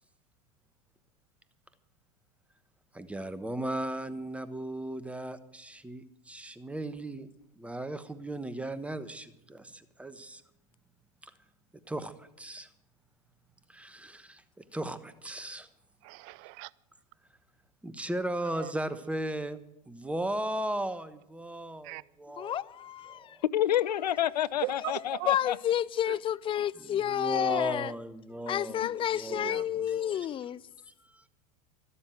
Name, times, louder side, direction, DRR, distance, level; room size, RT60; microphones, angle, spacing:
voice 1, 2.9-7.3 7.5-10.4 11.2-11.3 11.9-12.7 13.7-15.7 17.8-19.6 19.9-22.6 23.1-23.4 26.8-30.3 30.9-31.3, right 1 dB, 5° right, 1.2 m, -37 dB
voice 2, 16.0-16.7 18.5-18.7 21.8-22.0 24.6-25.3 26.1-26.2 29.3-29.8, right 22 dB, 50° right, 0.5 m, -39 dB
voice 3, 22.4-23.4 24.8-25.0 25.3-27.9 28.5-30.6, left 10 dB, 25° left, 0.5 m, -30 dB
voice 4, 23.5-25.6, left 11 dB, 75° left, 0.7 m, -28 dB
13.0 x 12.5 x 7.8 m
hypercardioid pair, 90°, 21 cm